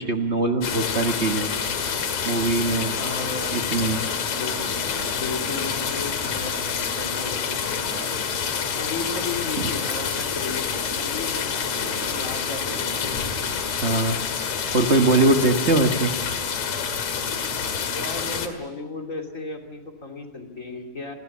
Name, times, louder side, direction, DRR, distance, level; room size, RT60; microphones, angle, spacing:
voice 1, 0.0-1.5 2.2-2.9 3.5-4.1 13.8-14.2 14.7-16.1, right 2 dB, 85° right, 3 dB, 0.6 m, -21 dB
sound 1, 0.6-18.5, left 6 dB, 60° left, 3.0 m, -27 dB
voice 2, 3.0-3.6 4.3-4.8 5.1-8.1 8.6-13.2 17.9-21.1, left 3 dB, 25° left, 3 dB, 3.0 m, -35 dB
29.0 x 21.5 x 7.3 m, 1.2 s
omnidirectional pair, 3.6 m